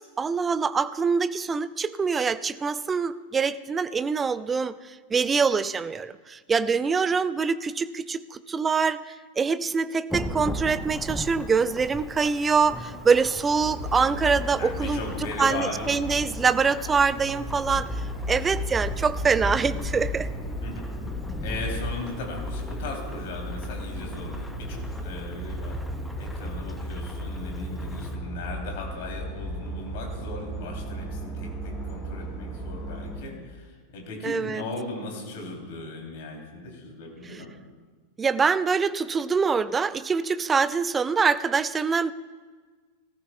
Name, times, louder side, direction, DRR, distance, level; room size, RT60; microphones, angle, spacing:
voice 1, 0.2-15.0 15.4-20.3 34.2-34.6 37.3-37.4 38.2-42.1, right 5 dB, 15° right, 16 dB, 0.4 m, -24 dB
Thunderstorm / Rain, 10.1-28.2, equal, 5° left, 0.9 m, -38 dB
sound 1, 13.6-33.2, equal, 20° left, 3.7 m, -35 dB
voice 2, 14.6-15.9 20.6-20.9 21.4-25.8 26.2-37.5, left 2 dB, 50° left, 1 dB, 3.2 m, -37 dB
19.0 x 14.0 x 2.3 m, 1.4 s
figure-of-eight pair, 90°, 0 cm